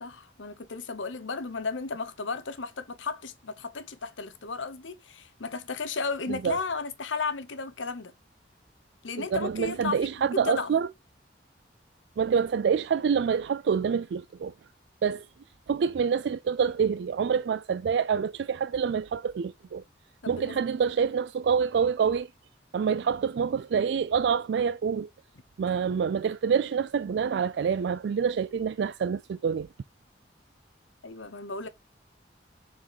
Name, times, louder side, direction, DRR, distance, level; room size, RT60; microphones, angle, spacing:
voice 1, 0.0-8.1 9.0-10.7 20.2-20.6 31.0-31.7, left 4 dB, 90° left, 1.0 m, -34 dB
voice 2, 9.2-10.9 12.2-14.5 15.0-15.3 15.7-19.8 20.3-22.3 22.7-25.1 25.6-29.7, right 6 dB, 65° right, 0.3 m, -27 dB
7.0 x 4.4 x 3.0 m
head